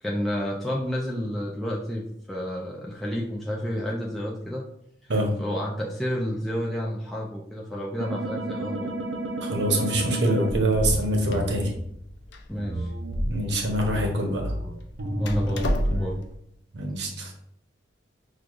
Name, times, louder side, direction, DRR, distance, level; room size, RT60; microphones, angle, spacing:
voice 1, 0.0-4.6 5.0-5.1 5.4-8.9 12.5-12.9 15.2-16.2, equal, ahead, -5 dB, 0.4 m, -30 dB
sound 1, 8.0-11.7 12.6-16.1, right 1 dB, 85° right, 0.6 m, -31 dB
voice 2, 9.4-11.7 13.2-14.5 16.7-17.3, right 1 dB, 65° right, 1 dB, 0.9 m, -25 dB
Door, 10.8-16.4, equal, 65° left, 0.5 m, -33 dB
6.1 x 2.3 x 2.5 m, 0.73 s
head